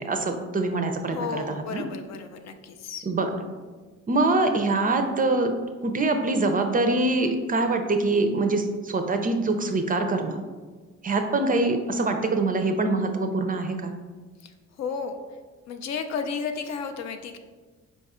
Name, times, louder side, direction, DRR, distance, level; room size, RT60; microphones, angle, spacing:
voice 1, 0.0-1.8 3.1-3.3 4.1-5.5 5.8-10.4 11.0-13.9, right 2 dB, 30° right, 6 dB, 0.4 m, -24 dB
voice 2, 1.1-3.1 14.4-14.5 14.8-15.2 15.7-17.4, left 6 dB, 60° left, 7 dB, 0.5 m, -33 dB
4.5 x 2.3 x 4.2 m, 1.4 s
cardioid pair, 90°, 30 cm